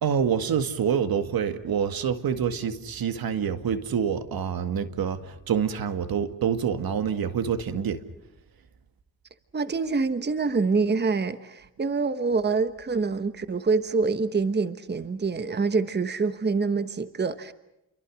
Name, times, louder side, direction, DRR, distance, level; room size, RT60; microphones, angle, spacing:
voice 1, 0.0-8.0, right 7 dB, 70° right, 2.0 m, -27 dB
voice 2, 9.5-17.5, right 4 dB, 25° right, 1.2 m, -26 dB
30.0 x 23.5 x 6.4 m
cardioid pair, 90°, 37 cm